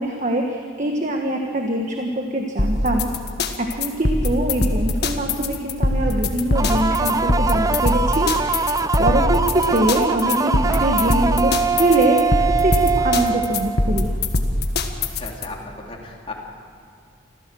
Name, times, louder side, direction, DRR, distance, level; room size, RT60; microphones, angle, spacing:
voice 1, 0.0-3.1 3.6-8.7 9.0-14.1, right 1 dB, 40° right, 2 dB, 1.4 m, -23 dB
sound 1, 2.6-15.4, left 2 dB, 55° left, 1.6 m, -22 dB
sound 2, 6.5-14.1, right 4 dB, 15° right, 0.5 m, -23 dB
voice 2, 14.9-16.3, left 3 dB, 30° left, -1 dB, 3.1 m, -36 dB
26.0 x 15.5 x 7.8 m, 2.4 s
head